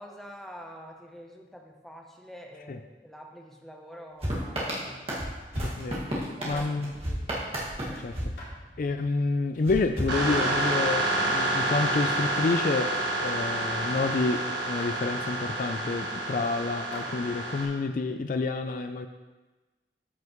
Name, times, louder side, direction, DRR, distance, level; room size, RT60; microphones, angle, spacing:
voice 1, 0.0-5.0 5.4-5.5 6.4-7.3 7.9-8.1, equal, ahead, 1 dB, 0.7 m, -46 dB
sound 1, 4.2-9.1 9.6-10.9, equal, 35° right, 1.8 m, -33 dB
voice 2, 5.6-6.9 8.0-8.1 8.8-12.9 13.2-19.1, left 3 dB, 50° left, 8 dB, 0.4 m, -29 dB
sound 2, 6.5-7.1 7.6-7.9 8.4-8.6 9.3-9.7 10.3-10.6 11.0-11.1 11.8-11.9 12.4-12.6 12.9-13.2 13.9-14.0 14.8-15.0 15.8-15.9 16.7-17.1, left 2 dB, 85° left, 2.6 m, -46 dB
sound 3, 10.1-17.7, right 1 dB, 80° right, 1.6 m, -29 dB
13.0 x 5.6 x 3.1 m, 1.2 s
head